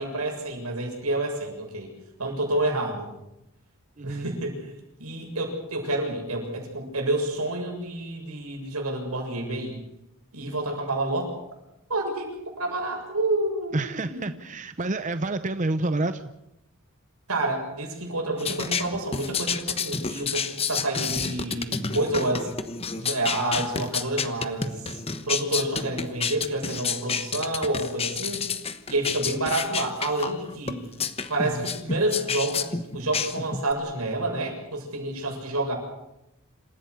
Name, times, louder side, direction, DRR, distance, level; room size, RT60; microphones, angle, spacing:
voice 1, 0.0-1.9 2.2-3.1 4.0-4.7 5.0-9.8 10.3-11.3 11.9-14.2 17.3-22.5 23.0-28.5 28.9-30.8 31.3-35.7, right 2 dB, 90° right, 1 dB, 7.2 m, -29 dB
voice 2, 4.0-4.3 13.7-16.3, right 2 dB, 35° right, 11 dB, 0.8 m, -28 dB
sound 1, 18.4-33.7, left 5 dB, 25° left, 1.2 m, -30 dB
27.5 x 15.5 x 8.3 m, 0.88 s
head